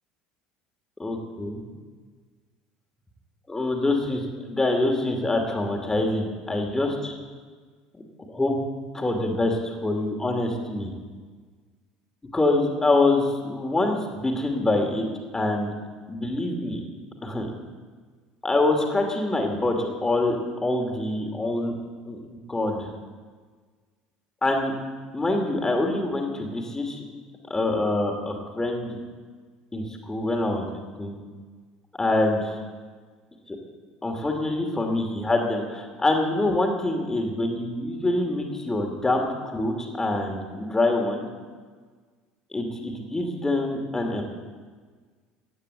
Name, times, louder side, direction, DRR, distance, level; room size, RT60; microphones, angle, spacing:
voice 1, 1.0-1.6 3.5-7.1 8.3-8.6 8.9-10.9 12.3-15.1 15.3-15.7 16.1-16.8 17.2-17.5 18.4-21.7 22.1-22.2 22.5-22.9 24.4-24.7 25.1-27.0 27.5-29.0 29.7-30.7 31.0-31.1 32.0-32.6 33.5-33.6 34.0-39.3 39.5-41.3 42.5-44.2, left 2 dB, 15° left, 2 dB, 2.5 m, -25 dB
15.5 x 9.2 x 7.8 m, 1.5 s
hypercardioid pair, 65°, 4 cm